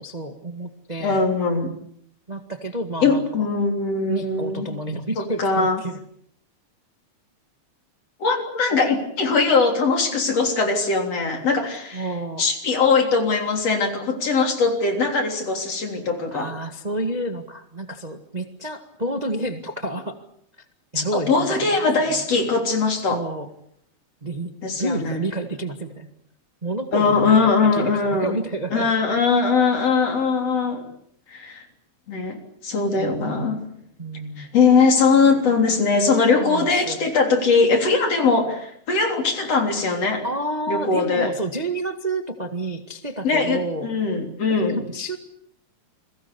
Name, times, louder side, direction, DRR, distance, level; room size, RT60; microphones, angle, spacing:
voice 1, 0.0-1.2 2.3-3.5 4.1-6.0 11.9-12.5 16.3-20.2 20.9-21.7 23.1-23.5 24.2-26.1 26.6-28.9 33.0-33.5 34.0-34.5 36.3-37.1 40.2-44.0 44.5-45.2, right 2 dB, 20° right, 6 dB, 1.2 m, -30 dB
voice 2, 1.0-1.7 3.0-4.7 5.2-5.8 8.2-12.1 12.4-16.5 20.9-23.2 24.6-25.2 26.9-28.4 28.7-30.9 31.3-31.6 32.1-32.4 32.6-33.6 34.4-40.3 40.7-41.3 43.2-44.9, left 4 dB, 55° left, 4 dB, 4.5 m, -21 dB
29.5 x 22.0 x 7.0 m, 0.67 s
omnidirectional pair, 3.5 m